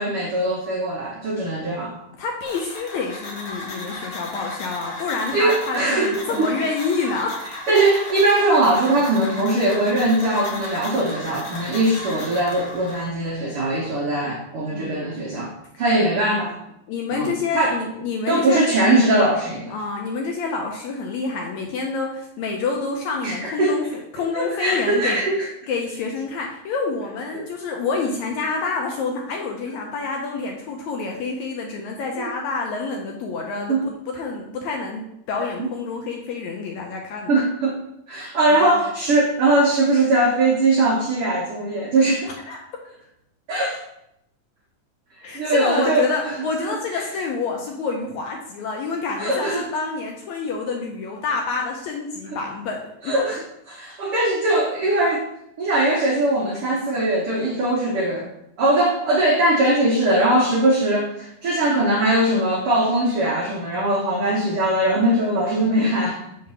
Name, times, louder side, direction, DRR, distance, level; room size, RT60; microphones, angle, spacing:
voice 1, 0.0-1.9 5.3-6.5 7.7-16.5 17.1-17.8 18.3-19.7 23.2-23.8 24.3-25.5 27.3-27.5 32.2-32.3 33.7-33.9 35.6-35.7 37.3-37.8 38.1-42.3 43.5-43.8 45.3-46.4 46.9-47.0 49.2-49.6 53.0-55.3 55.6-58.3 58.6-66.2, right 1 dB, 75° right, -3 dB, 1.2 m, -21 dB
voice 2, 2.2-7.4 14.7-15.5 16.9-18.7 19.7-25.2 25.7-37.3 38.5-38.8 42.5-42.6 45.2-53.1, left 4 dB, 80° left, 1 dB, 1.7 m, -28 dB
sound 1, 2.4-13.1, left 2 dB, 60° left, 1.4 m, -35 dB
5.7 x 3.2 x 5.5 m, 0.81 s
omnidirectional pair, 3.8 m